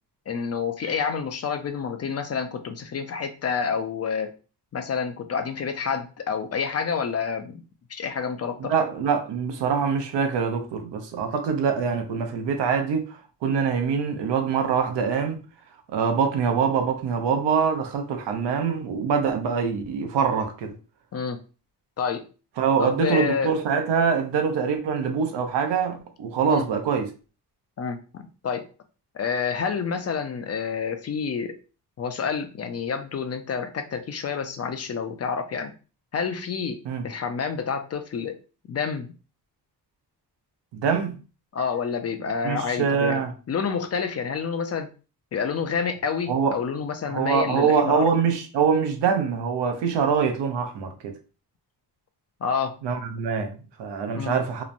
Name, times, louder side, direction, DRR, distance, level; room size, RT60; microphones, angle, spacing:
voice 1, 0.3-4.3 4.7-7.6 7.9-8.7 21.1-21.4 22.0-22.3 22.8-23.5 26.5-26.7 27.8-28.7 29.1-31.6 32.0-35.7 36.1-38.4 38.7-39.1 41.5-44.9 45.3-48.1 52.4-52.8 54.1-54.4, left 6 dB, 40° left, 0.4 m, -28 dB
voice 2, 8.6-13.1 13.4-15.4 15.9-20.7 22.6-27.1 36.8-37.1 40.7-41.2 42.4-43.3 46.3-46.5 47.1-51.2 52.8-54.6, right 6 dB, 80° right, 0.7 m, -24 dB
3.0 x 2.1 x 2.5 m
cardioid pair, 90°, 41 cm